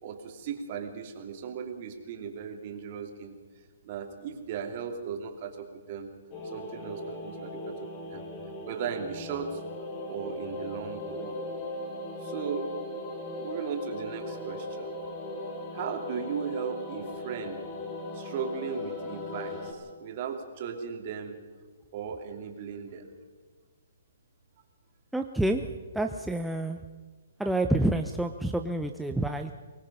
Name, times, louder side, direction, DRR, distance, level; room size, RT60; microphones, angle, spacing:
voice 1, 0.0-3.4 3.8-6.1 6.4-8.2 8.7-9.6 10.1-11.4 12.2-12.7 13.4-14.9 15.7-17.7 18.1-21.4 21.9-23.1, right 7 dB, 40° right, 3 dB, 3.0 m, -37 dB
sound 1, 6.3-19.7, left 2 dB, 30° left, 3.9 m, -38 dB
voice 2, 25.1-25.7 25.9-26.8 27.4-29.5, right 1 dB, ahead, 4 dB, 0.6 m, -28 dB
24.0 x 19.5 x 5.7 m, 1.4 s
hypercardioid pair, 155°, 0 cm